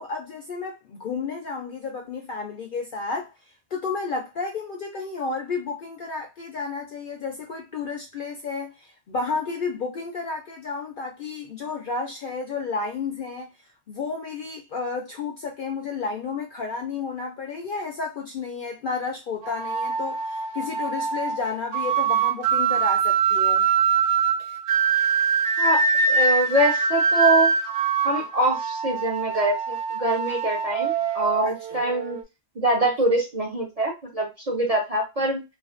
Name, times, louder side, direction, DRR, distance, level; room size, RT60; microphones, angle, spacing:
voice 1, 0.0-3.3 3.7-13.5 13.9-23.7 31.4-31.5, left 4 dB, 60° left, 0.5 m, -31 dB
sound 1, 19.4-32.2, right 6 dB, 70° right, 0.8 m, -23 dB
voice 2, 25.6-27.5 28.0-32.2 32.6-35.4, right 1 dB, 50° right, 0.4 m, -24 dB
2.4 x 2.3 x 2.4 m
omnidirectional pair, 1.3 m